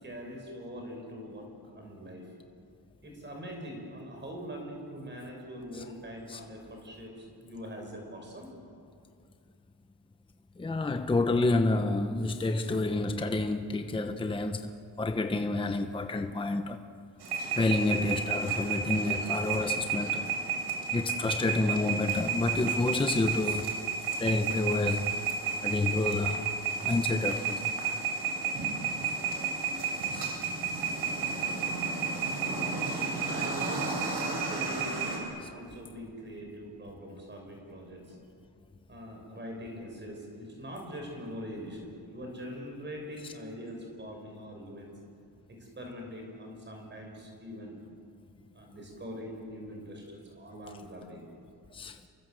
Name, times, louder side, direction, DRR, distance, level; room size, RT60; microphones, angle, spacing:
voice 1, 0.0-2.3 3.0-8.5 33.1-38.2 38.9-44.9 45.5-47.8 48.5-51.3, equal, 30° right, 5.9 m, -43 dB
voice 2, 10.6-14.7 15.0-16.8 17.6-20.3 20.9-23.7 24.2-25.1 25.6-26.5 26.8-27.7 30.1-30.3 30.8-30.9 51.7-52.0, left 2 dB, 15° left, 0.9 m, -29 dB
sound 1, 17.2-35.2, right 5 dB, 90° right, 6.4 m, -32 dB
29.0 x 24.0 x 7.8 m
wide cardioid pair, 145°, 38 cm